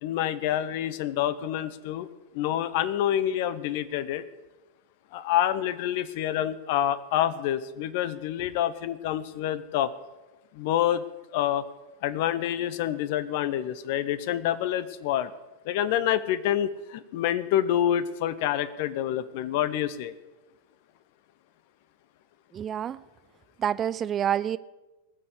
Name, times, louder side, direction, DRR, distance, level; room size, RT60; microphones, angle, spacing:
voice 1, 0.0-2.1 2.3-4.2 5.1-9.9 10.5-11.0 11.3-11.6 12.0-15.3 15.6-20.1, left 11 dB, 50° left, 16 dB, 0.8 m, -27 dB
voice 2, 22.5-23.0 23.6-24.6, right 9 dB, 25° right, 17 dB, 0.4 m, -27 dB
19.5 x 7.0 x 8.3 m, 1.1 s
figure-of-eight pair, 90°, 0 cm